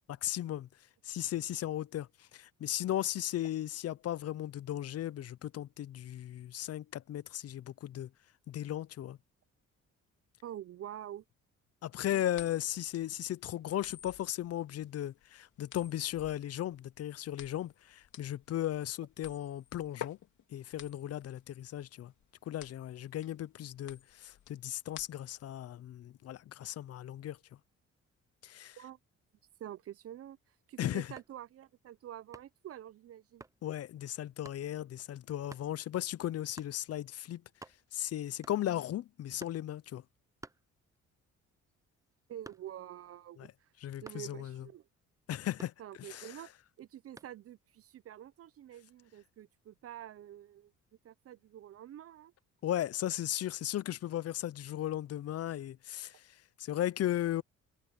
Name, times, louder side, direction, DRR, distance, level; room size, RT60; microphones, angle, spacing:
voice 1, 0.2-0.7 1.0-8.1 8.5-9.2 11.8-20.2 20.5-22.1 22.5-27.4 28.4-28.8 30.8-31.1 33.6-37.4 37.9-40.0 43.4-43.5 43.8-44.7 45.3-45.7 46.0-46.3 52.6-57.4, left 12 dB, 55° left, 0.5 m, -36 dB
voice 2, 10.4-11.2 12.1-12.6 28.8-29.0 29.6-30.4 30.7-33.4 42.3-43.5 44.0-44.8 45.8-46.5 46.8-50.7 51.0-52.3, right 11 dB, 50° right, 0.5 m, -47 dB
sound 1, 12.3-25.5, left 10 dB, 75° left, 3.0 m, -51 dB
sound 2, 31.1-31.4 32.3-32.7 33.4-33.6 34.4-34.7 35.5-35.7 36.6-36.8 37.2-37.3 37.5-38.0 38.4-38.8 39.4-39.7 40.4-41.2 41.5-42.9 44.0-44.4 45.6-46.3 47.2-47.4, right 3 dB, 10° right, 0.6 m, -53 dB
cardioid pair, 90°, 30 cm